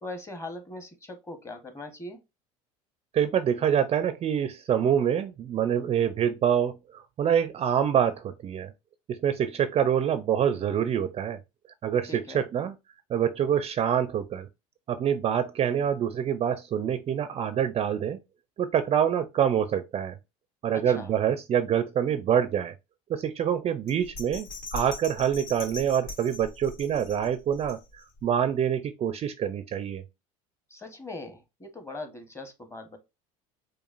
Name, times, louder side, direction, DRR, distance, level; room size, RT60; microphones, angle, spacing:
voice 1, 0.0-2.2 12.1-12.5 20.7-21.1 30.7-33.0, left 2 dB, 15° left, 1.1 m, -40 dB
voice 2, 3.1-8.7 9.1-11.4 11.8-12.7 13.1-14.5 14.9-18.2 18.6-20.2 20.6-22.7 23.1-30.0, right 9 dB, 35° right, 0.4 m, -26 dB
Bell, 23.9-28.2 28.6-28.7, left 3 dB, 80° left, 1.7 m, -41 dB
4.7 x 2.4 x 2.5 m
hypercardioid pair, 85°, 18 cm